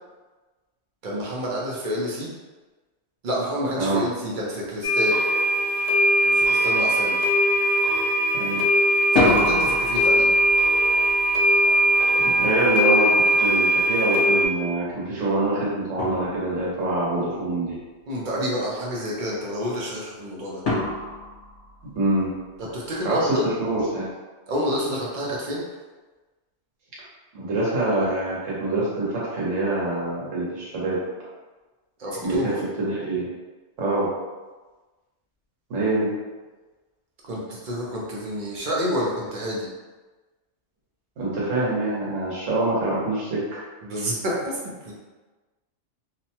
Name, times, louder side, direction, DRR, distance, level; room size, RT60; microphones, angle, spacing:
voice 1, 1.0-2.3 3.2-5.2 6.2-7.3 9.1-10.3 18.1-20.6 22.6-23.5 24.5-25.7 32.0-32.6 37.2-39.7 43.8-44.9, equal, 50° right, -4 dB, 0.7 m, -28 dB
sound 1, 4.8-14.5, equal, 75° left, 0.9 m, -20 dB
sound 2, 6.4-6.6 6.9-7.5 8.9-13.8 15.4-15.5 16.0-16.9 20.6-22.4, left 2 dB, 50° left, 0.9 m, -29 dB
voice 2, 12.2-17.8 21.9-22.3 23.0-23.2 23.4-24.1 27.3-31.0 32.2-32.5 32.8-33.3 33.8-34.1 35.7-36.1 41.2-43.6, right 2 dB, 85° right, -7 dB, 1.3 m, -25 dB
2.8 x 2.2 x 2.8 m, 1.3 s
omnidirectional pair, 1.3 m